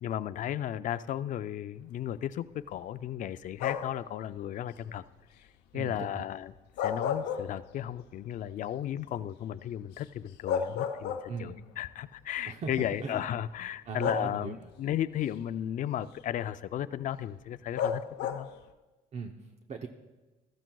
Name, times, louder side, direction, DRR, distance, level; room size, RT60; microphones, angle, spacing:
voice 1, 0.0-5.0 5.7-6.5 6.8-18.5, left 11 dB, 50° left, 14 dB, 0.4 m, -35 dB
sound 1, 3.6-4.1 6.6-8.0 8.4-8.5 10.0-10.1 10.5-11.6 12.6-12.7 14.0-14.7 17.8-18.6, left 7 dB, 90° left, 0.8 m, -32 dB
voice 2, 5.7-6.2 11.3-11.6 12.4-12.7 13.0-13.3 13.9-14.7 19.1-19.9, right 5 dB, 40° right, 3 dB, 0.8 m, -39 dB
14.0 x 14.0 x 2.3 m, 1.2 s
cardioid pair, 110°, 17 cm